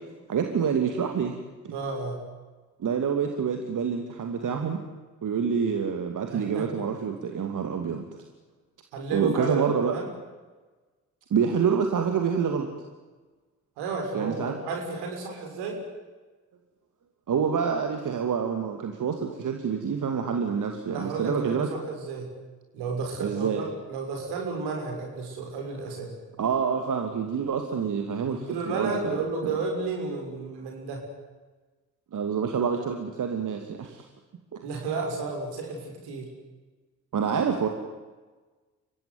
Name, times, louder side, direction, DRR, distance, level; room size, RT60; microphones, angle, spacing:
voice 1, 0.3-1.3 1.6-1.7 2.8-4.8 5.2-8.0 9.1-9.9 11.3-12.7 14.1-14.6 17.3-21.7 23.2-23.7 26.4-29.2 32.1-34.0 34.5-34.6 37.1-37.7, right 6 dB, 45° right, 4 dB, 2.6 m, -27 dB
voice 2, 1.7-2.2 6.3-6.6 8.9-10.1 13.8-15.8 20.9-22.3 22.7-26.2 28.3-31.0 34.6-36.3, right 3 dB, 65° right, 1 dB, 6.3 m, -32 dB
30.0 x 16.5 x 9.7 m, 1.3 s
figure-of-eight pair, 40°, 42 cm